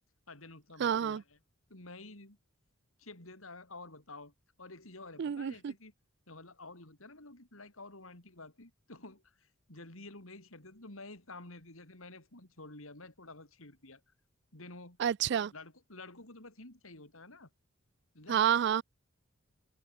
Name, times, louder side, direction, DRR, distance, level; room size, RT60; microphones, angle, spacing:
voice 1, 0.3-1.4 1.7-2.4 3.0-4.3 4.6-5.9 6.3-14.0 14.5-15.0 15.5-17.5 18.1-18.5, left 2 dB, 75° left, 4.8 m, -50 dB
voice 2, 0.8-1.2 5.2-5.7 15.0-15.5 18.3-18.8, right 8 dB, 55° right, 0.3 m, -29 dB
head